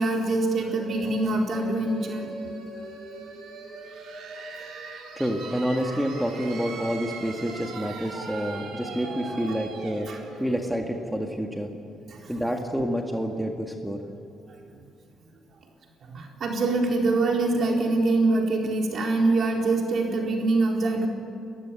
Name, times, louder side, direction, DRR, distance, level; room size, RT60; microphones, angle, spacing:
voice 1, 0.0-2.3 10.1-10.2 12.1-12.3 16.0-21.1, right 2 dB, 55° right, 0 dB, 4.1 m, -24 dB
sound 1, 0.6-12.1, right 4 dB, 80° right, 4.4 m, -40 dB
voice 2, 5.2-10.1 10.4-11.7 12.3-14.0, equal, 5° right, 2 dB, 1.9 m, -28 dB
28.0 x 15.5 x 8.5 m, 2.5 s
cardioid pair, 90°, 0 cm